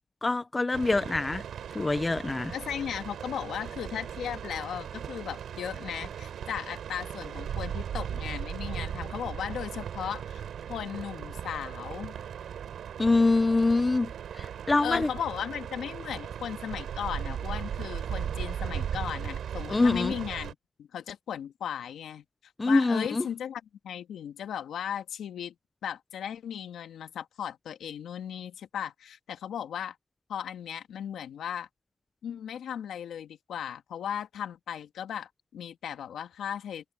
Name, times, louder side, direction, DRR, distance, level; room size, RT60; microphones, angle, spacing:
voice 1, 0.2-1.4 1.7-2.5 13.0-15.1 19.7-20.1 22.6-23.3, left 3 dB, 20° left, 0.8 m, -25 dB
sound 1, 0.7-20.5, right 9 dB, 70° right, 4.1 m, -37 dB
voice 2, 2.5-10.4 10.7-12.2 14.8-22.2 22.6-25.5 25.8-30.0 30.3-31.7 32.2-36.9, left 9 dB, 75° left, 2.1 m, -36 dB
cardioid pair, 95°, 0 cm